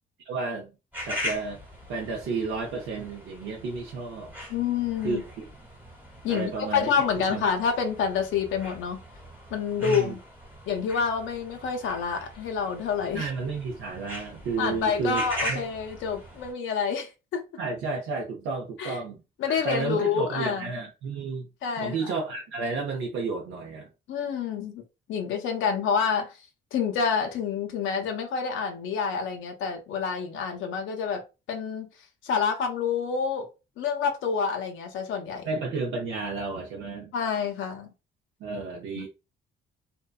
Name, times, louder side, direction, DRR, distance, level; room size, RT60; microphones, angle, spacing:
voice 1, 0.2-0.7 1.0-1.6 1.9-4.3 5.0-5.5 6.3-6.9 7.3-7.4 9.8-10.1 13.1-15.2 15.5-15.6 17.6-19.2 19.5-21.5 21.8-23.9 35.5-37.1 38.4-39.1, right 4 dB, 85° right, 0.6 m, -32 dB
sound 1, 0.9-16.5, left 1 dB, 10° right, 1.1 m, -40 dB
voice 2, 4.5-5.2 6.2-9.0 9.5-10.2 10.7-13.3 14.6-17.4 18.8-19.0 19.4-20.7 21.6-22.1 24.1-24.8 25.1-26.4 26.7-31.2 31.5-31.9 32.2-33.5 33.8-35.5 37.1-37.9 39.0-39.1, left 6 dB, 75° left, 0.5 m, -28 dB
2.6 x 2.1 x 2.3 m
cardioid pair, 90°, 20 cm